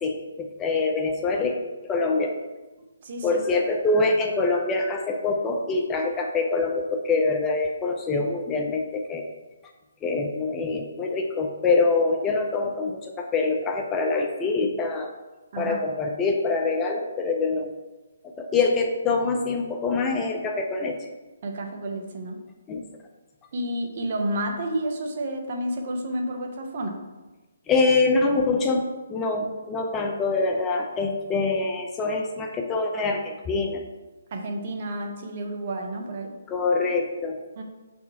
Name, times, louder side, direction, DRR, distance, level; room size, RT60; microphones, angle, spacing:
voice 1, 0.0-1.5 1.9-2.3 3.2-9.2 10.0-15.1 15.6-17.7 18.4-21.1 22.7-22.8 27.7-33.8 36.5-37.4, left 3 dB, 15° left, 2 dB, 0.6 m, -25 dB
voice 2, 2.8-3.4 15.5-15.8 21.4-22.4 23.5-27.0 34.3-36.3 37.6-37.7, right 1 dB, 50° right, 3 dB, 1.0 m, -30 dB
6.8 x 4.4 x 3.6 m, 1.1 s
hypercardioid pair, 150°, 0 cm